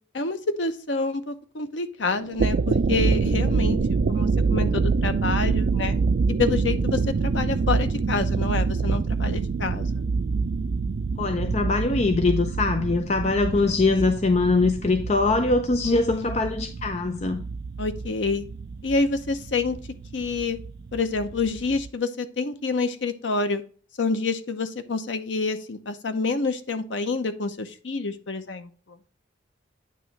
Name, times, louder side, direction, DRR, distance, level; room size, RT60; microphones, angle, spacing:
voice 1, 0.1-6.0 6.4-9.9 13.5-14.1 15.8-16.3 17.8-18.4 18.8-19.8 20.1-20.6 20.9-23.6 24.0-28.7, left 3 dB, 85° left, 0.8 m, -28 dB
sound 1, 2.2-21.9, right 4 dB, 55° right, 0.4 m, -26 dB
voice 2, 11.2-17.4, left 3 dB, 35° left, 0.5 m, -22 dB
9.2 x 3.1 x 5.9 m
head